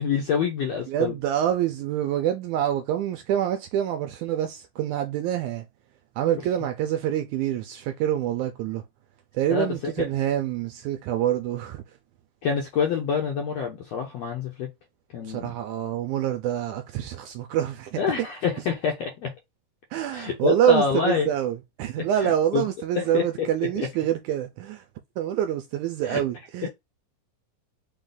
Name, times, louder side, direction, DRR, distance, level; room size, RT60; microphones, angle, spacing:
voice 1, 0.0-1.1 9.5-10.1 12.4-14.7 15.1-15.5 18.0-19.3 20.1-21.3 22.0-22.7 22.9-23.5 23.8-23.9 26.0-26.2, left 6 dB, 70° left, 1.6 m, -27 dB
voice 2, 0.9-5.7 6.2-8.8 9.3-11.8 15.2-18.0 19.9-24.8 25.2-26.7, right 11 dB, 80° right, 1.9 m, -26 dB
5.3 x 2.5 x 3.7 m
omnidirectional pair, 3.8 m